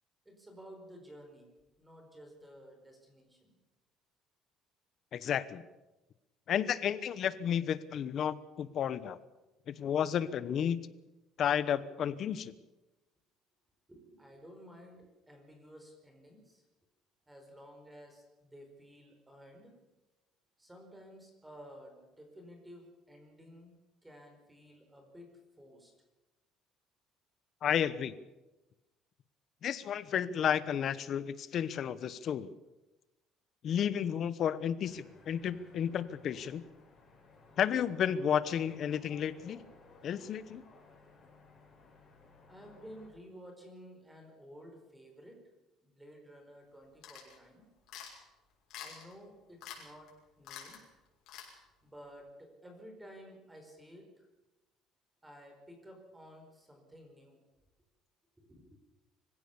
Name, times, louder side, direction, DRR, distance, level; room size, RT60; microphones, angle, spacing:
voice 1, 0.2-1.5 1.8-3.6 13.9-16.6 17.3-19.8 20.6-25.3 25.6-25.9 42.5-45.4 45.8-47.7 48.8-50.8 51.8-54.3 55.2-57.4 58.4-58.8, equal, 10° right, 3 dB, 4.7 m, -53 dB
voice 2, 5.1-5.6 6.5-9.2 9.7-10.9 11.4-12.5 27.6-28.2 29.6-32.5 33.6-36.6 37.6-39.6 40.0-40.6, left 9 dB, 45° left, 15 dB, 1.0 m, -32 dB
sound 1, 34.8-43.1, left 3 dB, 20° left, 6.6 m, -58 dB
sound 2, 47.0-47.4 47.9-48.2 48.7-49.1 49.6-49.8 50.1-50.2 50.4-50.8 51.3-51.5, left 9 dB, 65° left, 6.3 m, -46 dB
24.5 x 16.5 x 7.2 m, 1.0 s
cardioid pair, 150°, 0 cm